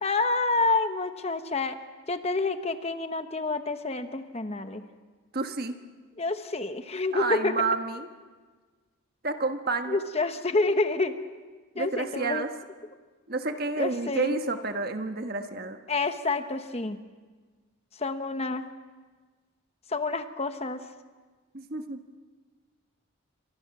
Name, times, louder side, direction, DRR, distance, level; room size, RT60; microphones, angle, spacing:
voice 1, 0.0-1.8 2.1-4.8 6.2-7.6 9.9-11.2 11.8-12.4 13.8-14.4 15.9-17.0 17.9-18.7 19.9-20.9, left 3 dB, 30° left, 9 dB, 1.0 m, -28 dB
voice 2, 5.3-5.8 7.1-8.1 9.2-10.0 11.7-12.5 13.3-15.8 21.5-22.0, right 3 dB, 45° right, 7 dB, 1.4 m, -30 dB
29.5 x 25.0 x 6.1 m, 1.4 s
head